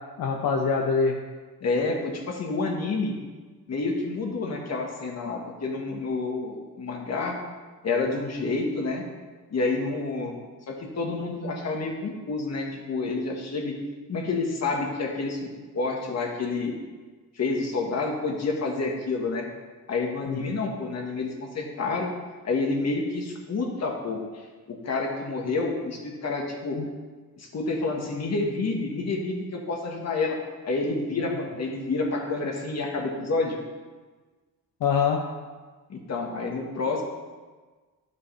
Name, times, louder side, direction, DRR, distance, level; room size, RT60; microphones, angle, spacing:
voice 1, 0.2-1.2 20.3-20.5 26.8-26.9 34.8-35.2, left 5 dB, 65° left, 0 dB, 0.9 m, -24 dB
voice 2, 1.6-3.1 3.7-7.4 7.8-9.0 9.5-10.4 10.7-13.7 14.1-15.4 15.7-16.7 17.3-19.5 19.9-22.1 22.4-24.4 24.7-26.8 27.4-30.4 30.6-33.6 35.9-37.0, left 3 dB, 45° left, 0 dB, 1.7 m, -29 dB
12.0 x 5.4 x 3.4 m, 1.4 s
cardioid pair, 110°, 35 cm